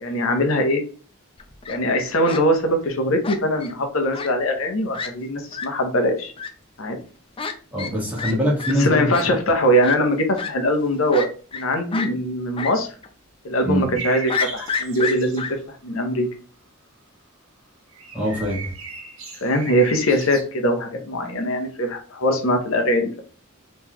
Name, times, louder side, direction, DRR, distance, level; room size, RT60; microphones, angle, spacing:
voice 1, 0.0-0.8 1.7-6.3 6.8-7.0 8.8-11.3 11.5-12.9 13.4-15.4 15.8-16.3 19.4-23.2, equal, 70° left, 4 dB, 0.7 m, -21 dB
Fowl, 1.4-1.8 2.3-2.4 3.2-3.7 4.1-4.3 4.6-4.7 4.9-5.1 5.5-5.7 6.4-6.5 7.4-7.5 7.8-7.9 8.2-8.3 8.6-8.7 9.1-9.2 9.8-10.0 10.4-10.5 11.1-11.6 11.9-12.1 12.6-12.7 13.0-13.1 14.3-15.5, left 5 dB, 25° left, 0.4 m, -28 dB
voice 2, 7.7-9.1 13.6-13.9 18.1-18.7, equal, 5° right, -4 dB, 1.4 m, -23 dB
sound 1, 13.9-15.5 17.9-20.4, right 5 dB, 65° right, 0.9 m, -37 dB
3.8 x 3.1 x 2.9 m, 0.39 s
head